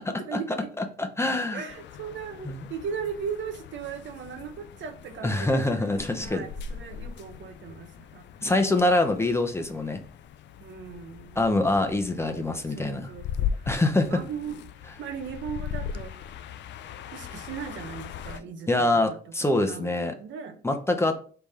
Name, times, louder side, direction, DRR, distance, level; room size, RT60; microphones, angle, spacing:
voice 1, 0.0-0.7 1.5-5.9 6.2-8.3 10.6-11.4 12.2-13.5 14.1-14.6 15.0-16.3 17.1-20.6, right 7 dB, 70° right, 0.7 m, -38 dB
voice 2, 0.8-1.6 2.4-2.6 5.2-6.5 8.4-10.0 11.4-13.1 13.7-14.2 18.7-20.1 20.6-21.2, left 2 dB, 15° left, 0.7 m, -25 dB
sound 1, 1.7-18.4, left 8 dB, 65° left, 0.4 m, -39 dB
3.6 x 3.3 x 4.1 m
cardioid pair, 90°, 20 cm